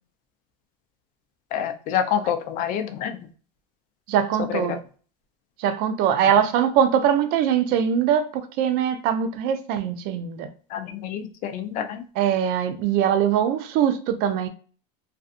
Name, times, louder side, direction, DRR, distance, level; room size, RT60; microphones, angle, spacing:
voice 1, 1.5-3.3 4.5-4.8 10.7-12.0, left 9 dB, 40° left, 0.4 m, -27 dB
voice 2, 4.1-4.8 5.6-10.5 12.2-14.5, right 9 dB, 45° right, 0.4 m, -22 dB
2.5 x 2.4 x 2.4 m
supercardioid pair, 130°, 21 cm